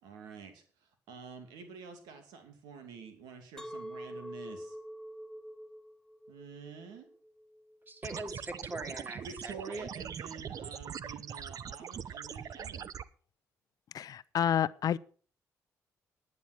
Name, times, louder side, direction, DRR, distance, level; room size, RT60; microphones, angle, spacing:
voice 1, 0.0-4.8 6.3-7.1 9.2-12.9, right 5 dB, 90° right, 2.6 m, -48 dB
Chink clink, 3.6-8.7, equal, 10° left, 1.0 m, -46 dB
voice 2, 7.9-9.9, right 1 dB, 30° right, 2.9 m, -42 dB
sound 1, 8.0-13.0, right 8 dB, 60° right, 0.7 m, -42 dB
voice 3, 13.9-15.0, left 9 dB, 65° left, 0.6 m, -29 dB
10.5 x 9.5 x 6.1 m
supercardioid pair, 65°, 7 cm